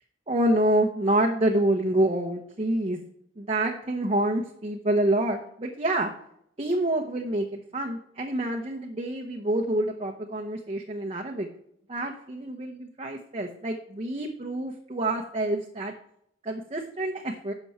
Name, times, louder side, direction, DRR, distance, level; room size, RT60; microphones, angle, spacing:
voice 1, 0.3-3.0 3.4-6.1 6.6-11.5 11.9-15.9 16.4-17.5, right 1 dB, 35° right, 1 dB, 1.0 m, -27 dB
11.5 x 7.0 x 4.4 m, 0.71 s
head